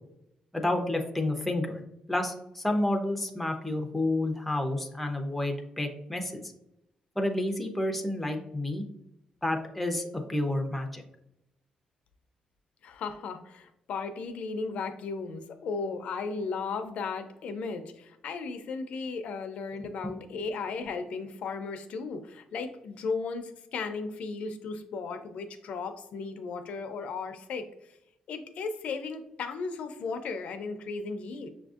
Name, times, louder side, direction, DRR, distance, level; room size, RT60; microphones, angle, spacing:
voice 1, 0.5-1.8 2.1-6.4 7.2-8.8 9.4-11.0 20.0-20.1, left 1 dB, 5° left, 3 dB, 0.4 m, -30 dB
voice 2, 12.8-28.0 28.3-31.5, left 4 dB, 65° left, 8 dB, 0.4 m, -35 dB
6.0 x 2.5 x 2.4 m, 0.83 s
cardioid pair, 165°, 2 cm